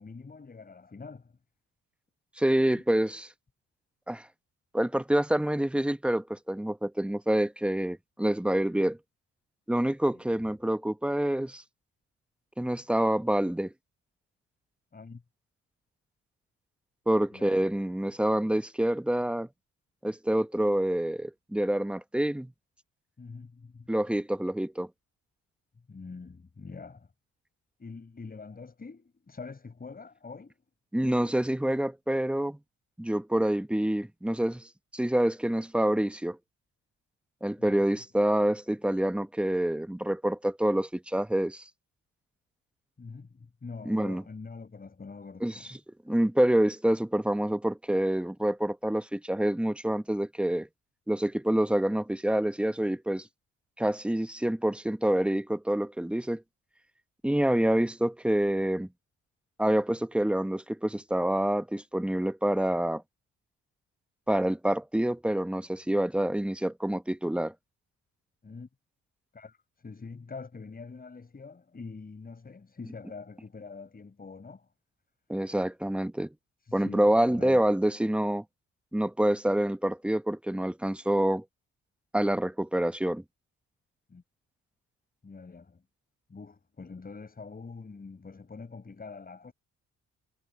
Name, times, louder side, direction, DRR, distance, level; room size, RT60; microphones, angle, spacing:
voice 1, 0.0-1.4 2.7-2.8 10.1-10.5 14.9-15.2 17.3-17.6 23.2-23.9 25.9-27.1 27.8-30.6 37.6-37.9 43.0-45.7 68.4-68.7 69.3-74.7 76.6-77.6 84.1-84.2 85.2-85.8 86.3-89.5, left 4 dB, 30° left, 5.2 m, -45 dB
voice 2, 2.4-3.3 4.1-4.2 4.7-9.0 9.7-11.6 12.6-13.7 17.1-19.5 20.0-22.5 23.9-24.9 30.9-32.6 33.0-36.4 37.4-41.6 43.9-44.2 45.4-45.5 46.1-50.7 51.1-53.3 53.8-56.4 57.2-58.9 59.6-63.0 64.3-67.5 75.3-76.3 76.7-78.4 78.9-81.4 82.1-83.2, right 1 dB, 5° right, 1.0 m, -27 dB
cardioid pair, 90°, 30 cm